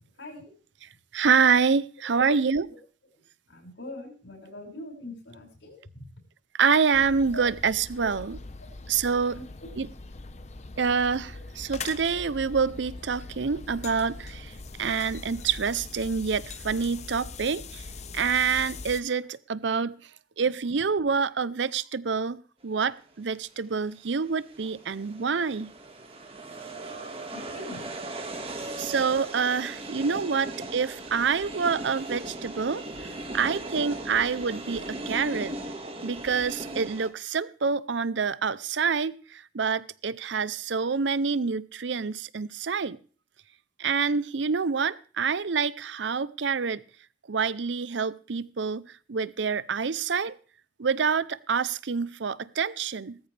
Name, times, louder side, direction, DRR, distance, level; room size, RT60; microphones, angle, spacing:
voice 1, 0.2-0.5 2.2-2.3 3.5-6.0 7.3-7.4 8.0-8.1 9.3-9.7 27.3-27.8, left 1 dB, 80° left, 0 dB, 6.0 m, -42 dB
voice 2, 1.1-2.7 6.6-8.4 8.9-9.4 9.8-9.9 10.8-14.5 14.8-17.8 18.1-19.9 20.4-25.7 28.8-32.8 33.3-35.6 36.0-43.0 43.8-46.8 47.3-50.3 50.8-53.2, right 5 dB, 75° right, 18 dB, 0.6 m, -27 dB
sound 1, 6.9-19.0, left 4 dB, 35° left, 0.8 m, -42 dB
sound 2, 24.1-37.1, right 2 dB, 30° right, 1.8 m, -38 dB
19.0 x 13.5 x 3.4 m, 0.40 s
head